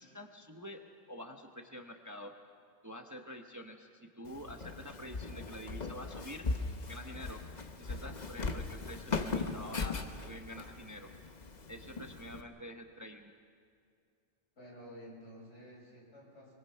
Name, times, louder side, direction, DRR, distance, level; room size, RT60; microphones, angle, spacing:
voice 1, 0.0-2.4 2.8-6.5 6.9-7.4 7.8-11.1 11.7-13.3, equal, 15° right, 4 dB, 0.9 m, -47 dB
Walk footsteps, 4.2-12.4, left 4 dB, 40° left, 1.1 m, -39 dB
voice 2, 14.6-16.5, equal, 75° left, -3 dB, 6.2 m, -51 dB
24.5 x 24.0 x 5.6 m, 2.3 s
omnidirectional pair, 1.2 m